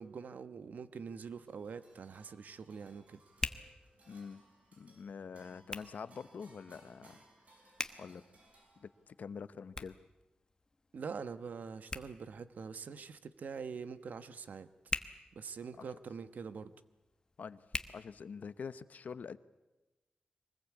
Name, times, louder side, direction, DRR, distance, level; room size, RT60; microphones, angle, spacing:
voice 1, 0.0-3.2 10.9-14.7 15.3-16.7, right 5 dB, 75° right, 12 dB, 1.1 m, -44 dB
Hands, 1.1-18.8, left 3 dB, 25° left, 1.1 m, -47 dB
sound 1, 1.5-9.2, right 2 dB, 55° right, 5.6 m, -64 dB
voice 2, 4.1-4.4 4.8-7.2 8.0-8.2 8.8-10.0 15.8-15.9 17.4-17.6 17.9-19.4, left 6 dB, 70° left, 14 dB, 0.8 m, -45 dB
23.5 x 20.0 x 8.5 m, 1.1 s
wide cardioid pair, 125°, 3 cm